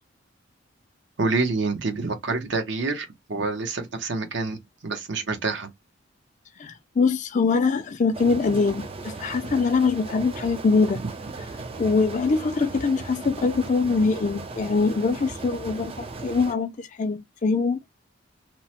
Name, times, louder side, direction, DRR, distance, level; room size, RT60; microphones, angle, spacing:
voice 1, 1.2-5.7, right 3 dB, 60° right, 0.7 m, -27 dB
voice 2, 6.6-11.0 11.8-17.8, left 4 dB, 40° left, 0.4 m, -23 dB
sound 1, 8.1-16.5, right 3 dB, 30° right, 0.4 m, -37 dB
2.9 x 2.0 x 2.8 m
head